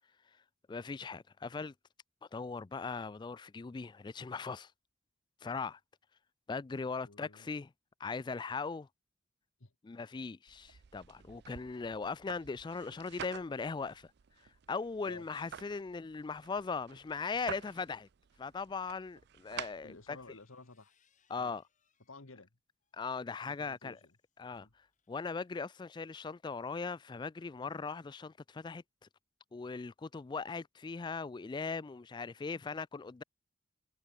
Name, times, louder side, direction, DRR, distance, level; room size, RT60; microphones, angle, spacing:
voice 1, 0.7-1.7 2.3-4.7 5.4-5.8 6.5-7.7 8.0-8.9 9.8-14.1 14.7-18.1 18.4-20.2 21.3-21.6 22.9-24.0 24.4-28.8 29.5-33.2, left 4 dB, 20° left, 0.3 m, -39 dB
voice 2, 7.1-7.5 9.6-9.7 15.0-15.3 19.8-20.9 21.4-21.6 22.1-22.5 23.5-24.1 24.5-24.7, left 3 dB, 85° left, 1.7 m, -53 dB
sound 1, 10.5-20.4, right 8 dB, 55° right, 0.4 m, -50 dB
sound 2, 20.1-22.3 22.8-25.6, left 7 dB, 40° left, 4.4 m, -78 dB
head